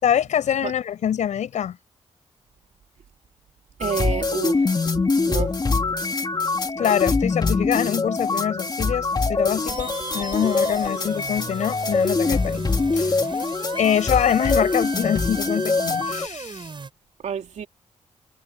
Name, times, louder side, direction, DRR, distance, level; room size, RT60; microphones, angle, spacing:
voice 1, 0.0-1.8 6.8-12.6 12.9-13.1 13.8-16.7, left 9 dB, 85° left, 5.3 m, -24 dB
sound 1, 3.8-16.3, left 3 dB, 35° left, 2.7 m, -24 dB
voice 2, 3.8-4.7 5.3-5.5 17.2-17.7, right 8 dB, 75° right, 3.2 m, -28 dB
sound 2, 9.7-16.9, right 4 dB, 40° right, 5.2 m, -36 dB
cardioid pair, 80°, 12 cm